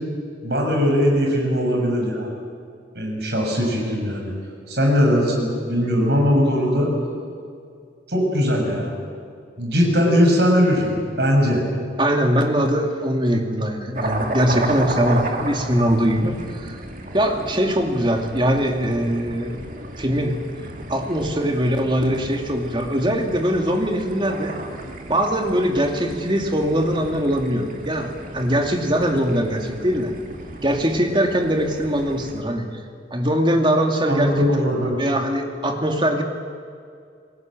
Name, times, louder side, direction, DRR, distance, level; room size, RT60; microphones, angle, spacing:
voice 1, 0.4-2.3 2.9-4.3 4.7-6.9 8.1-8.9 9.6-11.6 34.0-35.0, equal, 65° right, 0 dB, 6.9 m, -20 dB
voice 2, 12.0-16.8 17.1-19.6 20.0-20.4 20.9-24.5 25.1-30.1 30.6-32.6 33.1-34.3 35.0-36.2, equal, 25° right, 3 dB, 2.4 m, -21 dB
sound 1, 13.9-32.4, right 2 dB, 45° right, 2.5 m, -33 dB
28.0 x 19.5 x 7.7 m, 2.3 s
head